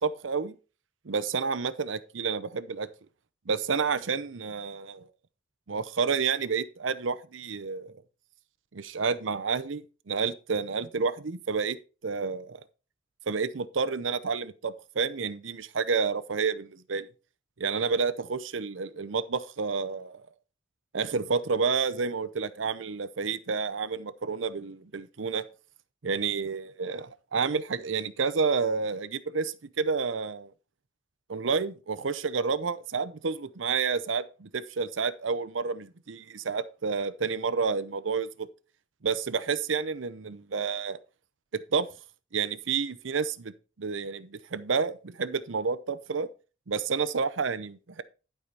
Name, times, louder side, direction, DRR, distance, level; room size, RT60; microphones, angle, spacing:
voice 1, 0.0-0.6 1.1-2.9 3.5-5.1 5.7-7.9 8.7-11.8 12.0-12.6 13.3-17.1 17.6-20.2 20.9-25.4 26.0-30.5 31.3-38.5 39.0-41.0 41.5-41.9 42.3-43.5 43.8-46.3 46.7-48.0, right 5 dB, 85° right, 0.7 m, -30 dB
11.5 x 4.9 x 5.3 m
head